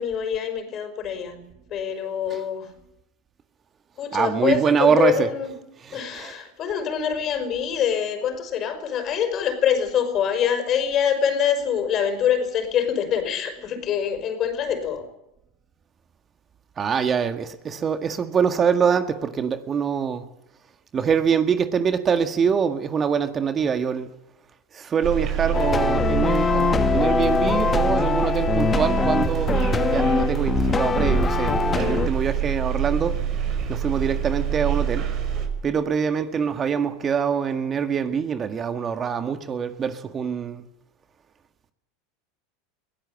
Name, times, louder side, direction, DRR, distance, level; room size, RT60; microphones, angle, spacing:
voice 1, 0.0-1.4 1.7-2.7 4.0-5.5 5.9-15.1, left 8 dB, 45° left, 5.4 m, -25 dB
voice 2, 4.1-5.3 5.9-6.3 16.8-20.2 20.9-24.1 24.7-33.2 33.7-35.1 35.6-40.6, right 6 dB, 30° right, 1.8 m, -24 dB
sound 1, 25.0-35.5, right 9 dB, 45° right, 5.7 m, -26 dB
sound 2, 25.5-32.1, left 5 dB, 25° left, 1.1 m, -23 dB
21.5 x 17.0 x 8.9 m
hypercardioid pair, 100°, 0 cm